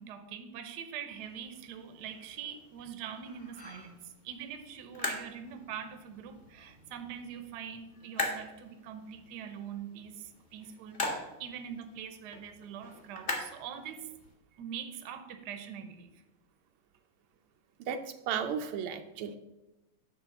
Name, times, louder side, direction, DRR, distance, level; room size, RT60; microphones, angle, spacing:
voice 1, 0.0-14.1 14.6-16.1, right 8 dB, 60° right, 8 dB, 1.2 m, -43 dB
sound 1, 1.1-14.3, left 1 dB, 25° left, 1.6 m, -42 dB
voice 2, 17.8-19.4, right 7 dB, 85° right, 7 dB, 1.6 m, -34 dB
9.9 x 3.5 x 6.9 m, 0.99 s
omnidirectional pair, 2.4 m